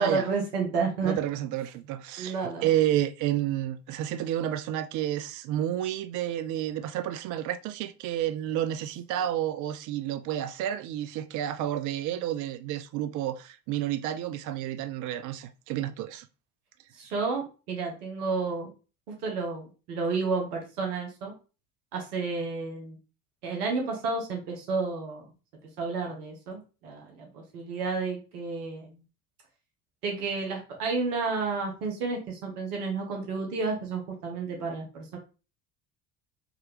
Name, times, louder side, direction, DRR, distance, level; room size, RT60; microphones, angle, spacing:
voice 1, 0.0-1.2 2.2-2.7 17.0-18.7 19.1-21.3 21.9-23.0 23.4-25.2 25.8-29.0 30.0-35.2, right 4 dB, 70° right, 1.3 m, -31 dB
voice 2, 1.0-16.3, right 12 dB, 40° right, 0.5 m, -30 dB
3.7 x 2.9 x 3.2 m
figure-of-eight pair, 65°, 47 cm